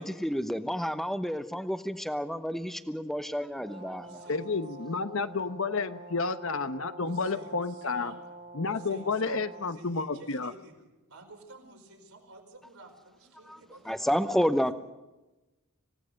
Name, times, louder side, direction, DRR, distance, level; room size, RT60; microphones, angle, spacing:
voice 1, 0.0-4.2 13.5-14.7, equal, ahead, 10 dB, 0.9 m, -30 dB
Brass instrument, 3.6-9.8, right 2 dB, 40° right, 1.3 m, -47 dB
voice 2, 3.6-4.5 7.0-8.3 8.7-10.8 11.1-14.7, right 2 dB, 80° right, 2 dB, 4.8 m, -51 dB
voice 3, 4.3-8.1 8.5-10.5, left 4 dB, 60° left, 11 dB, 1.0 m, -31 dB
27.0 x 17.5 x 6.5 m, 1.1 s
head